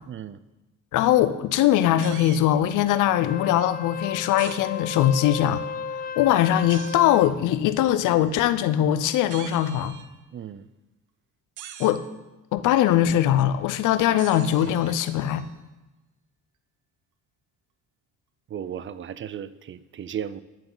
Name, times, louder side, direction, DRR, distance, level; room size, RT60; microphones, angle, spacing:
voice 1, 0.1-0.4 10.3-10.7 18.5-20.4, right 9 dB, 40° right, 0.5 m, -35 dB
voice 2, 0.9-5.7 6.2-10.0 11.8-12.0 12.5-15.5, left 11 dB, 90° left, 0.6 m, -21 dB
sound 1, 2.0-2.5 4.4-4.6 6.7-7.0 9.3-10.3 11.6-12.1 14.2-15.5, right 10 dB, 80° right, 0.7 m, -43 dB
Wind instrument woodwind instrument, 3.1-7.4, left 6 dB, 30° left, 0.5 m, -35 dB
11.5 x 7.9 x 3.9 m
cardioid pair, 90°, 30 cm